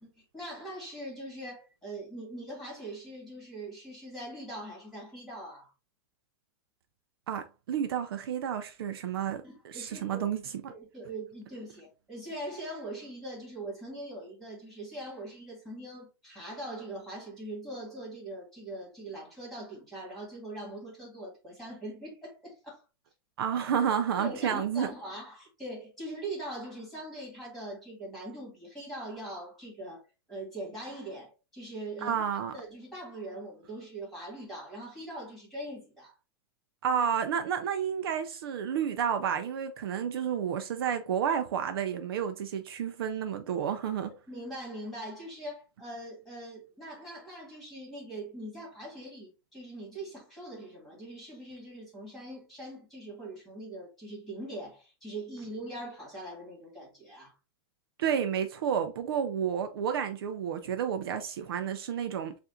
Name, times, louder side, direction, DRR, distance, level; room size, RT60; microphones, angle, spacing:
voice 1, 0.0-5.7 9.4-10.3 10.7-22.8 24.2-30.0 30.3-32.2 32.5-36.2 44.3-57.3, right 1 dB, ahead, 2.2 m, -42 dB
voice 2, 7.3-10.7 23.4-24.9 32.0-32.5 36.8-44.1 58.0-62.4, right 8 dB, 60° right, 0.5 m, -31 dB
6.9 x 2.5 x 2.5 m
supercardioid pair, 175°, 14 cm